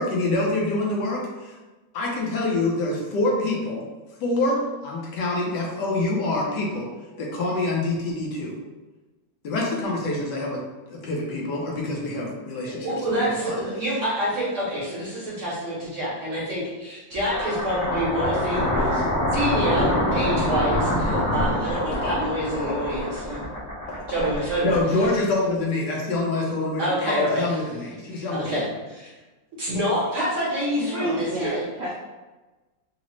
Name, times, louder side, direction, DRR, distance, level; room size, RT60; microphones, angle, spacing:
voice 1, 0.0-1.5 1.9-3.8 4.2-6.9 7.2-8.6 9.4-10.6 10.9-13.6 23.9-24.1 24.6-28.6, left 2 dB, 70° left, -2 dB, 1.2 m, -26 dB
voice 2, 12.7-19.0 19.3-23.4 24.1-24.8 26.8-27.6 28.1-29.1 29.6-31.6, equal, 55° right, -7 dB, 0.9 m, -27 dB
sound 1, 17.1-25.4, left 1 dB, 55° left, 0.8 m, -25 dB
voice 3, 30.8-31.9, equal, 70° right, -7 dB, 0.6 m, -32 dB
3.9 x 2.0 x 3.0 m, 1.2 s
omnidirectional pair, 2.0 m